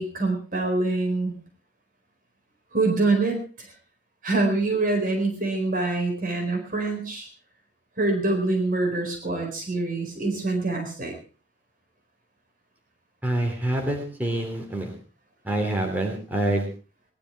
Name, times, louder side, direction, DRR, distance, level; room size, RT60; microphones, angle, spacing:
voice 1, 0.0-1.3 2.7-3.7 4.2-7.3 8.0-11.1, right 2 dB, 50° right, 2 dB, 4.4 m, -25 dB
voice 2, 13.2-14.9 15.4-16.7, right 1 dB, 10° right, 1 dB, 3.1 m, -26 dB
20.5 x 11.5 x 4.7 m, 0.37 s
head